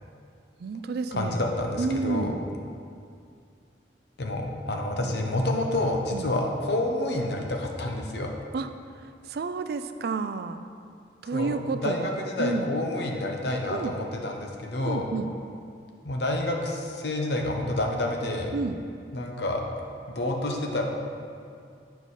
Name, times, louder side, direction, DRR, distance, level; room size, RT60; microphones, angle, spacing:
voice 1, 0.6-1.5 1.8-2.4 5.0-5.1 6.1-6.3 8.5-8.7 9.3-10.7 11.2-12.7 13.7-13.9 14.8-15.3 18.5-18.8, right 4 dB, 55° right, 10 dB, 0.3 m, -30 dB
voice 2, 1.1-2.3 4.2-8.3 11.3-15.1 16.0-18.5 19.1-19.6 20.1-20.8, left 1 dB, 60° left, 1 dB, 0.8 m, -28 dB
9.2 x 4.7 x 4.1 m, 2.4 s
head